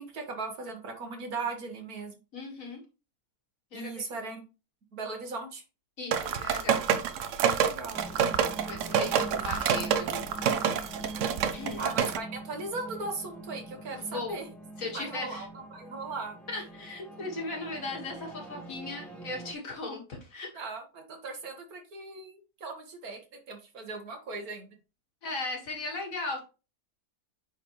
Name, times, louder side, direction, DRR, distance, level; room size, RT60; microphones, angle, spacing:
voice 1, 0.0-2.2 3.7-4.4 4.9-5.6 7.6-8.1 9.0-9.1 11.8-14.5 14.8-16.4 20.5-23.2 23.5-24.8, right 3 dB, 80° right, 4 dB, 2.0 m, -38 dB
voice 2, 2.3-2.8 3.7-3.9 6.0-6.8 8.6-10.2 11.5-11.8 13.9-14.4 14.8-15.5 16.5-20.5 25.2-26.4, left 3 dB, 65° left, 1 dB, 2.2 m, -37 dB
sound 1, 6.1-12.2, right 8 dB, 65° right, 0.9 m, -27 dB
sound 2, 7.9-19.5, right 2 dB, ahead, 1.2 m, -44 dB
8.9 x 4.0 x 3.2 m, 0.31 s
omnidirectional pair, 1.5 m